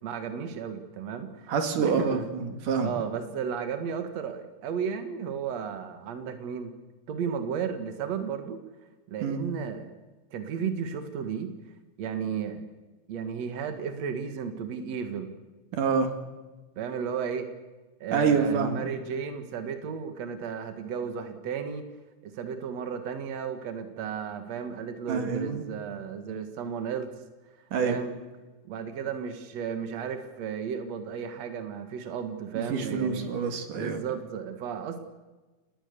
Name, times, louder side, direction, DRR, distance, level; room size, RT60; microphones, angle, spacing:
voice 1, 0.0-2.3 2.8-6.7 7.1-8.6 9.1-9.9 10.3-11.5 12.0-12.7 13.1-15.3 16.8-17.5 18.0-21.8 22.2-27.1 27.8-28.1 28.6-33.3 33.7-35.0, right 7 dB, 60° right, 7 dB, 2.8 m, -34 dB
voice 2, 1.5-2.9 9.2-9.4 15.7-16.1 18.1-18.8 25.1-25.7 27.7-28.0 32.7-34.0, right 5 dB, 85° right, 6 dB, 3.8 m, -27 dB
28.5 x 20.5 x 6.8 m, 1.2 s
omnidirectional pair, 3.5 m